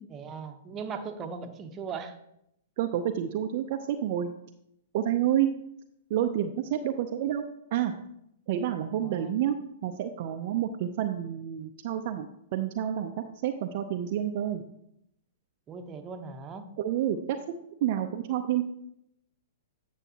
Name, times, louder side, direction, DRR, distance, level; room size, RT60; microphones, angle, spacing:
voice 1, 0.1-2.2 9.0-9.3 15.7-16.7, right 5 dB, 25° right, 6 dB, 0.9 m, -38 dB
voice 2, 2.8-4.3 4.9-5.5 6.1-7.4 7.7-7.9 8.5-9.6 9.8-13.1 13.4-14.6 16.8-17.4 17.8-18.7, right 10 dB, 50° right, 5 dB, 0.5 m, -29 dB
9.0 x 7.0 x 2.9 m, 0.77 s
hypercardioid pair, 115°, 0 cm